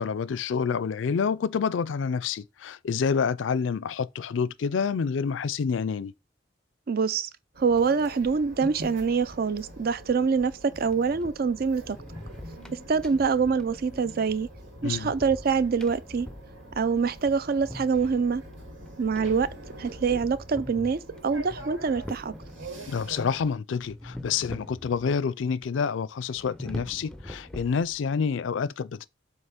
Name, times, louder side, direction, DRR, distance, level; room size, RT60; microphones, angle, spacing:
voice 1, 0.0-6.1 14.8-15.1 22.9-29.0, left 6 dB, 85° left, 0.4 m, -28 dB
voice 2, 6.9-7.3 7.6-12.0 12.9-14.5 14.8-16.3 16.8-18.4 19.0-19.5 19.8-22.3, right 5 dB, 55° right, 0.5 m, -25 dB
sound 1, 7.5-23.5, right 1 dB, 80° right, 2.2 m, -44 dB
sound 2, 10.8-23.0 23.8-25.3 25.6-25.7 26.2-28.2, left 1 dB, 5° left, 0.5 m, -44 dB
7.8 x 2.9 x 5.7 m
head